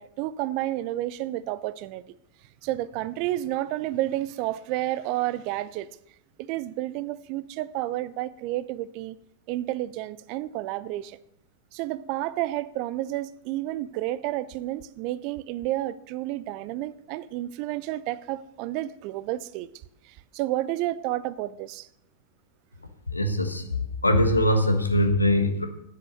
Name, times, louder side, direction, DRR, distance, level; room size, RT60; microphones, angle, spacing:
voice 1, 0.0-2.2 2.6-5.9 6.4-9.2 9.5-11.2 11.7-19.7 20.1-21.9, right 15 dB, 45° right, 0.5 m, -30 dB
voice 2, 23.1-23.7 24.0-25.7, left 1 dB, 85° left, 1.3 m, -22 dB
10.0 x 8.7 x 6.3 m
figure-of-eight pair, 90°, 0 cm